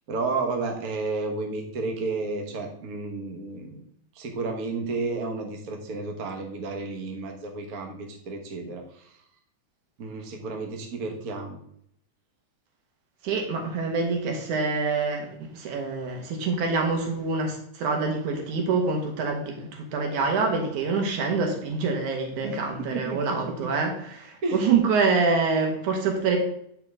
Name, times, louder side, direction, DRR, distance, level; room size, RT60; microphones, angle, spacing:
voice 1, 0.1-3.8 4.1-9.1 10.0-11.6 22.4-22.6 22.9-23.7 24.4-24.6, right 3 dB, 55° right, 2 dB, 0.9 m, -32 dB
voice 2, 13.2-26.4, right 4 dB, 90° right, 3 dB, 2.8 m, -26 dB
8.1 x 5.7 x 3.6 m, 0.69 s
omnidirectional pair, 3.3 m